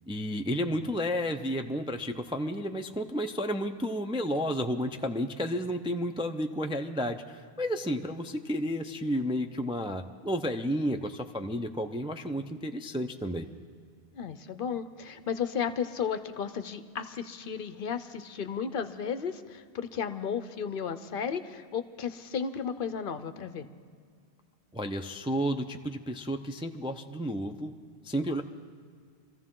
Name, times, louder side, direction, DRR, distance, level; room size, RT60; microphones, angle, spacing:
voice 1, 0.1-13.5 24.7-27.7 28.0-28.4, equal, 10° right, 5 dB, 0.3 m, -32 dB
voice 2, 14.1-23.7, left 7 dB, 60° left, 11 dB, 0.8 m, -34 dB
24.5 x 14.5 x 3.7 m, 2.1 s
omnidirectional pair, 1.1 m